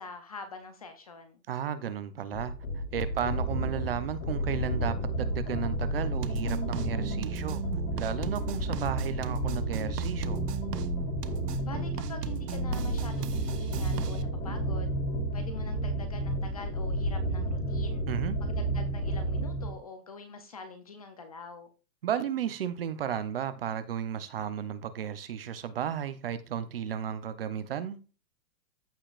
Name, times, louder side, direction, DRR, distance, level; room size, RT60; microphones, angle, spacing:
voice 1, 0.0-1.4 11.6-14.9 15.3-18.0 18.4-21.7, left 4 dB, 25° left, 0.5 m, -45 dB
voice 2, 1.5-7.6 8.0-10.4 18.1-18.4 22.0-28.0, right 9 dB, 35° right, 0.7 m, -34 dB
sound 1, 2.3-19.8, right 1 dB, 75° left, 5.2 m, -32 dB
sound 2, 6.2-14.2, right 9 dB, 70° right, 1.1 m, -37 dB
15.0 x 5.0 x 2.4 m
supercardioid pair, 175°, 50 cm